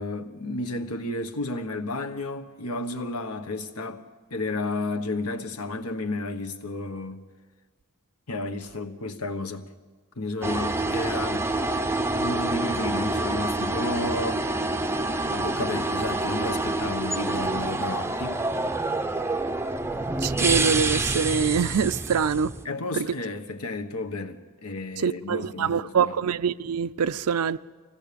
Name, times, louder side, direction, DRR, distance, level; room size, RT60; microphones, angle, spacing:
voice 1, 0.0-4.0 4.3-7.3 8.3-9.7 10.2-11.5 12.2-14.4 15.3-18.4 22.6-26.1, left 2 dB, 80° left, 1.3 m, -32 dB
sound 1, 10.4-22.7, right 2 dB, 10° right, 0.6 m, -27 dB
voice 2, 20.2-22.5 22.9-23.1 25.0-27.6, right 6 dB, 80° right, 0.5 m, -25 dB
24.5 x 16.5 x 6.9 m
head